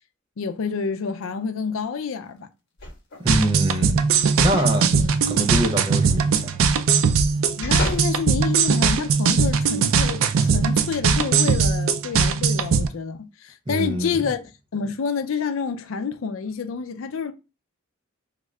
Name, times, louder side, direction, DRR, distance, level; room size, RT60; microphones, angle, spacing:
voice 1, 0.4-2.5 4.9-5.2 7.6-14.4 14.7-17.3, left 5 dB, 80° left, 0.5 m, -28 dB
sound 1, 2.8-3.3 4.4-4.8 5.2-5.3 6.9-8.2 8.8-8.9, left 2 dB, 60° left, 1.1 m, -33 dB
voice 2, 3.2-4.0 4.4-4.9 5.3-6.6 13.7-14.2, equal, 25° right, 0.6 m, -25 dB
sound 2, 3.3-12.9, right 5 dB, 85° right, 0.4 m, -20 dB
3.6 x 2.4 x 3.2 m
head